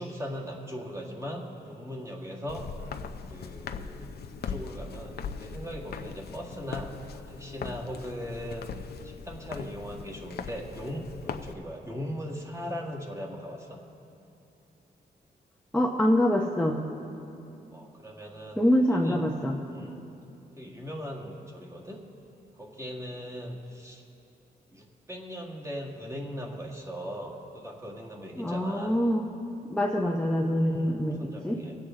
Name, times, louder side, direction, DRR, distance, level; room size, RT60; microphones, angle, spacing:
voice 1, 0.0-2.7 3.3-8.7 9.0-13.8 17.7-19.3 19.7-20.1 20.6-22.0 22.5-24.0 24.7-29.0 30.6-31.8, equal, 15° right, -2 dB, 1.9 m, -39 dB
Walk footsteps, 2.5-11.5, left 6 dB, 70° left, 0.6 m, -40 dB
voice 2, 15.7-16.8 18.6-19.5 28.4-29.3 29.7-31.6, equal, 5° left, -1 dB, 0.8 m, -25 dB
24.0 x 8.3 x 3.7 m, 2.7 s
cardioid pair, 105°, 17 cm